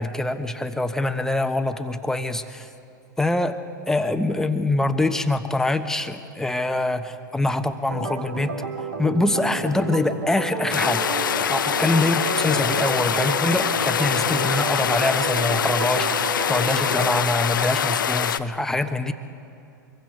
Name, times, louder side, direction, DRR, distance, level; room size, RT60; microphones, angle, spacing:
voice 1, 0.0-2.7 3.2-3.6 3.9-8.5 9.0-19.1, left 2 dB, 5° left, 7 dB, 1.2 m, -24 dB
Organ, 7.9-17.3, right 4 dB, 70° right, 2.3 m, -31 dB
sound 1, 10.7-18.4, left 8 dB, 80° left, 0.7 m, -24 dB
25.0 x 22.5 x 4.8 m, 2.8 s
hypercardioid pair, 100°, 11 cm